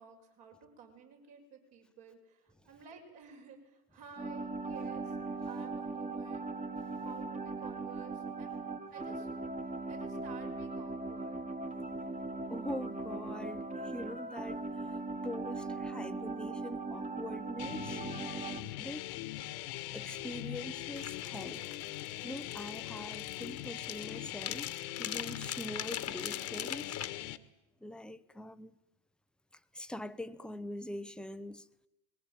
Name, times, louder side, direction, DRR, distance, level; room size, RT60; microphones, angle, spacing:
voice 1, 0.0-5.2 5.4-6.5 7.0-8.6 8.9-9.6 9.9-11.4, right 6 dB, 55° right, 6.4 m, -53 dB
sound 1, 4.2-18.6, right 3 dB, 15° right, 1.9 m, -39 dB
voice 2, 12.5-15.0 15.2-18.0 18.8-19.1 19.9-21.7 22.2-27.0 27.8-28.8 29.5-31.7, left 1 dB, ahead, 0.8 m, -43 dB
sound 2, 17.6-27.4, left 15 dB, 60° left, 1.5 m, -41 dB
sound 3, 21.0-27.1, left 10 dB, 30° left, 1.5 m, -42 dB
21.0 x 19.5 x 9.2 m
hypercardioid pair, 80°, 48 cm